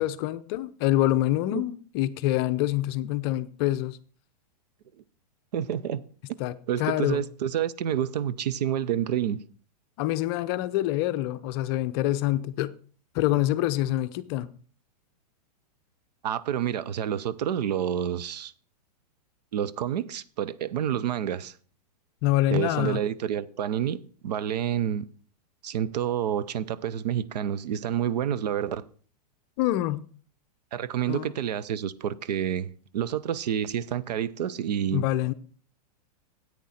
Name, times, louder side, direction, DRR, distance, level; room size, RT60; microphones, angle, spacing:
voice 1, 0.0-4.0 6.4-6.5 6.8-7.2 10.0-12.7 13.1-14.5 22.2-23.0 29.6-30.0 31.1-31.3 34.9-35.3, left 15 dB, 35° left, 0.6 m, -26 dB
voice 2, 5.5-6.0 6.3-6.4 6.7-9.4 16.2-18.5 19.5-21.5 22.5-25.1 25.6-28.8 30.7-35.0, right 9 dB, 75° right, 0.6 m, -28 dB
10.0 x 8.6 x 4.2 m
hypercardioid pair, 150°, 21 cm